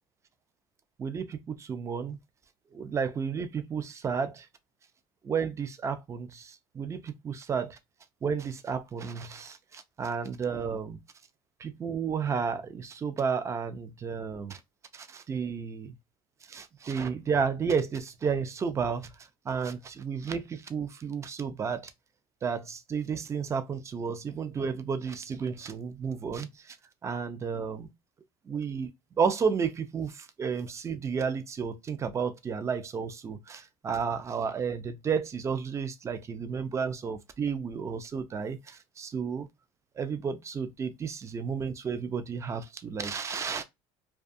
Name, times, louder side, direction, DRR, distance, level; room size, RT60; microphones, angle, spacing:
voice 1, 1.0-2.2 2.7-4.5 5.2-7.8 8.2-11.0 11.6-14.6 14.9-15.9 16.5-19.1 19.5-21.9 22.4-26.8 27.0-27.9 28.5-28.9 29.2-39.5 40.0-43.6, right 6 dB, 25° right, 0.4 m, -32 dB
2.5 x 2.3 x 2.5 m
cardioid pair, 120°, 13 cm